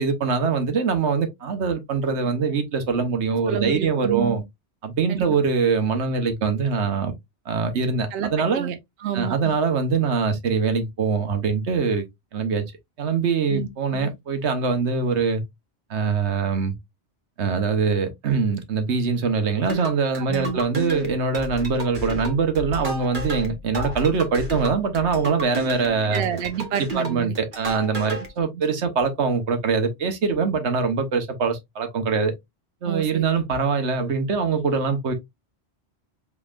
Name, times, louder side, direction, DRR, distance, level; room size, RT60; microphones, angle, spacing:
voice 1, 0.0-4.4 4.8-7.1 7.5-8.7 9.1-12.0 12.3-12.6 13.0-15.4 15.9-16.7 17.4-26.2 26.7-32.3 32.8-35.1, right 5 dB, 90° right, 1.3 m, -23 dB
voice 2, 3.5-4.4 5.1-5.4 8.1-9.6 13.5-14.1 20.1-20.6 26.0-27.4 28.5-28.6 32.8-33.3, right 10 dB, 65° right, 0.9 m, -30 dB
sound 1, 19.6-28.3, equal, 50° right, 1.4 m, -33 dB
5.4 x 3.7 x 2.4 m
omnidirectional pair, 1.1 m